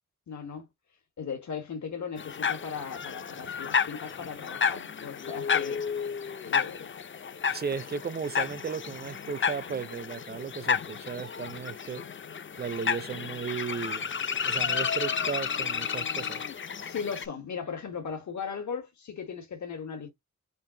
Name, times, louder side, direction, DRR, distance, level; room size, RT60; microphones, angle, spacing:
voice 1, 0.3-0.6 1.2-5.8 6.4-6.9 16.8-20.1, left 6 dB, 75° left, 1.4 m, -37 dB
sound 1, 2.2-17.3, left 6 dB, 45° left, 0.5 m, -32 dB
voice 2, 7.5-12.0 12.6-16.4, right 6 dB, 35° right, 0.5 m, -35 dB
5.5 x 2.5 x 3.8 m
wide cardioid pair, 95°, 29 cm